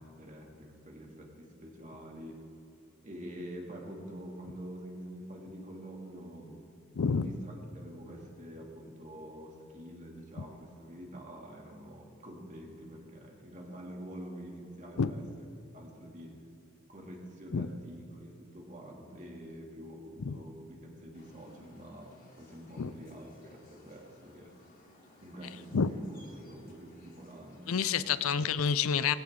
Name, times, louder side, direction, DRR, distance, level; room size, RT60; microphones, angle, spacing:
voice 1, 0.0-2.4 3.0-6.6 7.1-15.2 15.7-16.4 16.9-24.5 25.2-28.2, equal, 35° right, -1 dB, 2.5 m, -46 dB
voice 2, 7.0-7.3 15.0-15.1 17.5-17.7 20.2-20.4 22.8-22.9 25.7-25.9 27.7-29.1, left 6 dB, 70° left, 15 dB, 0.5 m, -28 dB
sound 1, 21.1-27.8, left 1 dB, 40° left, 3.1 m, -60 dB
19.0 x 16.0 x 3.7 m, 2.8 s
head